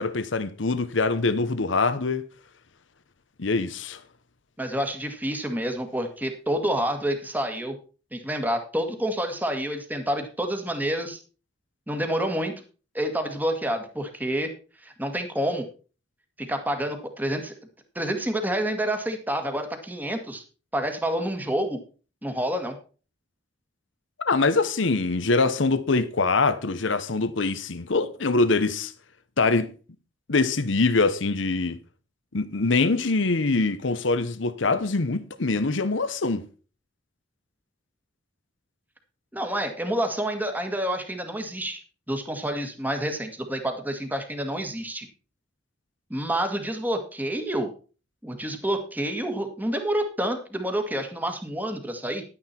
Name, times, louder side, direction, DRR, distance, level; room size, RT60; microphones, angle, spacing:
voice 1, 0.0-2.2 3.4-4.0 24.2-28.9 29.4-29.7 30.3-31.8 32.3-36.4, left 3 dB, 75° left, 0.9 m, -24 dB
voice 2, 4.6-7.8 8.1-11.2 11.9-12.5 12.9-14.5 14.8-15.6 16.4-17.5 18.0-20.4 20.7-21.8 22.2-22.7 39.3-41.8 42.1-45.1 46.1-47.7 48.2-52.2, right 1 dB, 10° right, 1.7 m, -28 dB
11.0 x 9.8 x 4.4 m
head